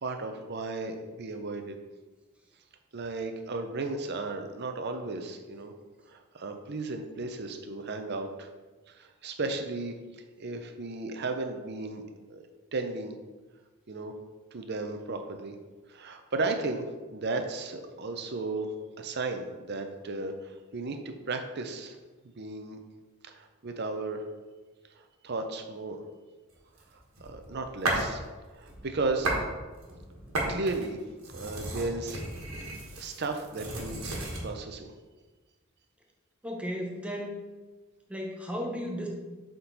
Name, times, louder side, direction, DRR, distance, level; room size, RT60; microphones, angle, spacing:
voice 1, 0.0-1.8 2.9-5.7 6.1-8.5 8.9-9.9 10.4-12.5 12.7-13.1 13.9-14.1 14.5-15.6 15.9-16.9 17.1-18.7 19.0-21.0 21.3-21.9 22.2-22.8 23.2-24.3 25.0-26.0 26.9-28.2 28.5-29.3 30.5-31.0 31.3-32.2 33.0-34.9, right 3 dB, 50° right, 6 dB, 0.6 m, -35 dB
sound 1, 26.8-28.2 28.6-29.5 29.8-34.5, right 2 dB, 80° right, 1.5 m, -34 dB
voice 2, 36.4-37.3 38.1-39.1, equal, 5° right, 0 dB, 0.8 m, -34 dB
6.9 x 3.8 x 4.0 m, 1.3 s
head